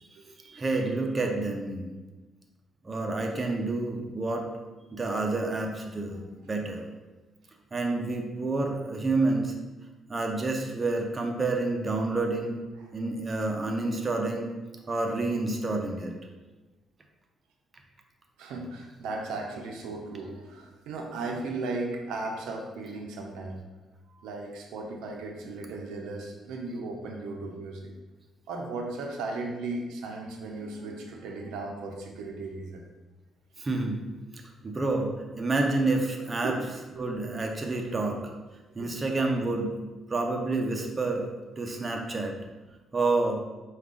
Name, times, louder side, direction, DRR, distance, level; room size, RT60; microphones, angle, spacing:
voice 1, 0.4-1.9 2.8-4.5 4.9-6.2 6.5-6.8 7.7-9.5 10.1-12.6 12.9-14.5 14.9-16.1 33.6-34.0 34.6-36.6 37.0-38.2 38.7-39.7 40.1-41.3 41.6-42.4 42.9-43.4, right 2 dB, 30° right, 2 dB, 0.6 m, -28 dB
voice 2, 18.4-23.6 24.1-27.9 28.5-32.8 36.4-36.6 37.0-37.1 38.8-38.9, right 3 dB, 90° right, 1 dB, 0.5 m, -36 dB
4.7 x 2.3 x 3.7 m, 1.2 s
cardioid pair, 90°, 0 cm